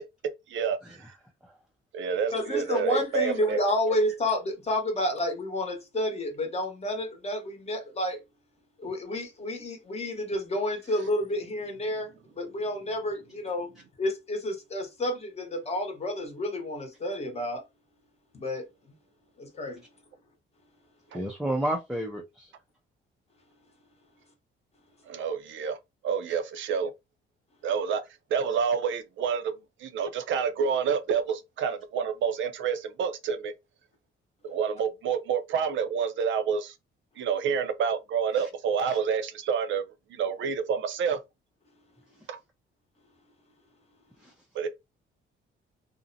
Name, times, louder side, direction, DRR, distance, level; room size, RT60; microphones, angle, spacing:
voice 1, 0.5-1.1 1.9-3.6 21.1-21.2 25.1-25.8 26.0-26.9 27.6-28.0 28.3-29.5 29.8-33.5 34.4-36.7 37.2-39.8 40.1-41.2 42.3-42.4 44.5-44.7, right 6 dB, 65° right, 0.5 m, -28 dB
voice 2, 2.3-8.2 8.8-17.6 18.3-18.6 19.4-19.8, left 1 dB, 30° left, 0.9 m, -30 dB
voice 3, 21.1-22.5 26.3-26.4 38.3-38.5 38.9-39.0 44.2-44.3, right 1 dB, ahead, 0.4 m, -32 dB
2.5 x 2.0 x 2.6 m
cardioid pair, 115°, 21 cm